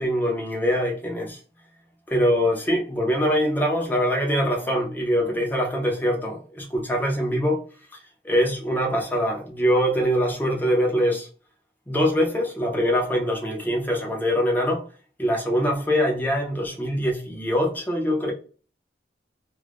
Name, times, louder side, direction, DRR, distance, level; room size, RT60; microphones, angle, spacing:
voice 1, 0.0-1.4 2.1-7.6 8.2-11.3 11.9-14.8 15.2-18.3, equal, 10° left, 0.5 m, -23 dB
2.4 x 2.1 x 3.3 m
head